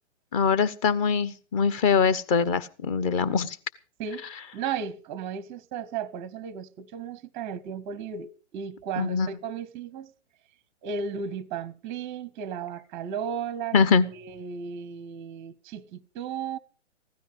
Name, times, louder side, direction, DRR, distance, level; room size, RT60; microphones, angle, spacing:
voice 1, 0.3-3.6 9.0-9.3 13.7-14.1, left 5 dB, 25° left, 1.0 m, -23 dB
voice 2, 4.0-10.1 10.8-13.8 14.0-16.6, right 7 dB, 15° right, 0.7 m, -35 dB
16.0 x 13.0 x 5.5 m
figure-of-eight pair, 125°, 37 cm